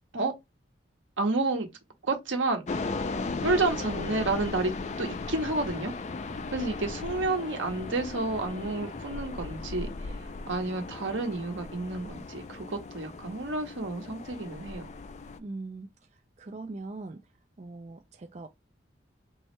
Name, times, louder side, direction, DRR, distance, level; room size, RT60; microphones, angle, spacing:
voice 1, 1.2-1.7 2.0-2.6 3.4-4.7 5.0-5.9 6.5-9.9 10.5-14.8, right 3 dB, 80° right, 1.2 m, -30 dB
sound 1, 2.7-15.4, left 3 dB, 35° left, 0.4 m, -37 dB
voice 2, 15.4-17.2 17.6-18.5, right 3 dB, 35° right, 0.4 m, -41 dB
4.6 x 3.2 x 3.1 m
head